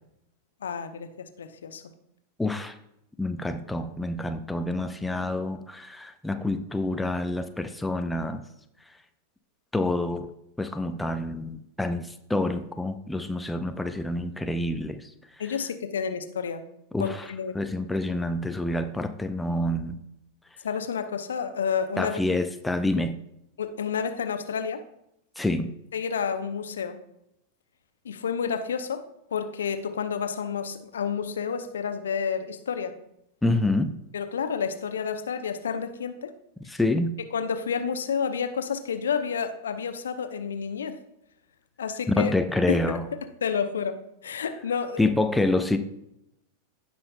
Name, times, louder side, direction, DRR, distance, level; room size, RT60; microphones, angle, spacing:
voice 1, 0.6-1.8 15.4-16.6 17.0-17.5 20.6-22.2 23.6-24.8 25.9-27.0 28.0-29.0 29.3-32.9 34.1-36.3 37.3-41.0 41.8-42.3 42.7-43.0 43.4-44.0 44.2-45.0, left 6 dB, 65° left, 8 dB, 0.7 m, -30 dB
voice 2, 2.4-2.7 3.2-8.4 9.7-10.3 10.6-15.1 16.9-17.3 17.5-20.0 22.0-23.2 25.4-25.7 33.4-33.9 36.7-37.2 42.2-43.1 45.0-45.8, left 2 dB, 5° left, 7 dB, 0.5 m, -27 dB
16.5 x 5.6 x 2.2 m, 0.81 s
figure-of-eight pair, 90°, 0 cm